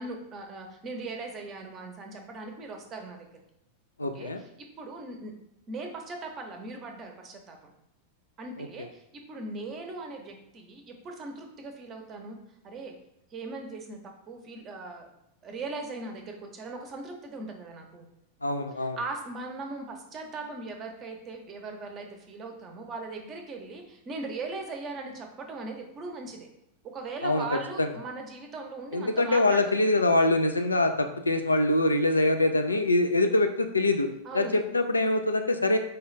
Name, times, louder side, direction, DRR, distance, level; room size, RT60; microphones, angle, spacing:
voice 1, 0.0-3.3 4.0-4.5 4.8-5.3 5.7-7.7 8.4-9.0 9.3-12.4 12.6-12.9 13.3-15.1 15.4-18.1 18.8-26.5 26.8-29.8 34.2-34.6, right 3 dB, 30° right, 3 dB, 0.7 m, -39 dB
voice 2, 4.0-4.4 8.6-8.7 18.4-19.0 27.2-27.4 27.8-27.9 28.9-34.1 34.3-35.8, left 2 dB, 80° left, 6 dB, 0.3 m, -24 dB
4.4 x 2.3 x 3.2 m, 0.83 s
figure-of-eight pair, 90°, 0 cm